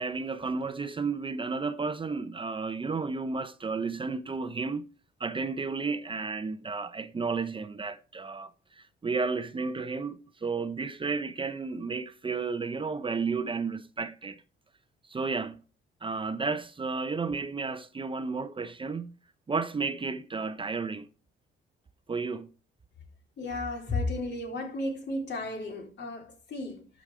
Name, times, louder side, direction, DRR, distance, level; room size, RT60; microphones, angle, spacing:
voice 1, 0.0-4.8 5.2-14.4 15.1-15.6 16.0-19.1 19.5-21.1 22.1-22.5, right 4 dB, 25° right, 0.7 m, -32 dB
voice 2, 23.4-26.9, left 2 dB, 65° left, 3.7 m, -33 dB
13.0 x 5.2 x 4.8 m
cardioid pair, 90°, 20 cm